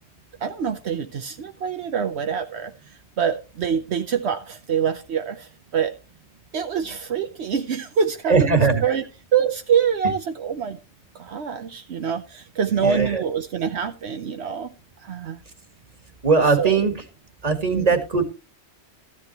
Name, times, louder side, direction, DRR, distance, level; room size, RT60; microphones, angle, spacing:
voice 1, 0.4-2.7 3.2-5.9 6.5-9.0 9.3-10.8 11.1-14.7 15.0-15.4 16.6-16.9 17.7-17.9, right 7 dB, 75° right, 7 dB, 1.1 m, -25 dB
voice 2, 8.3-8.8 12.8-13.2 16.2-16.9 17.4-18.2, right 4 dB, 35° right, 7 dB, 1.8 m, -19 dB
14.0 x 10.5 x 3.0 m, 0.29 s
omnidirectional pair, 1.1 m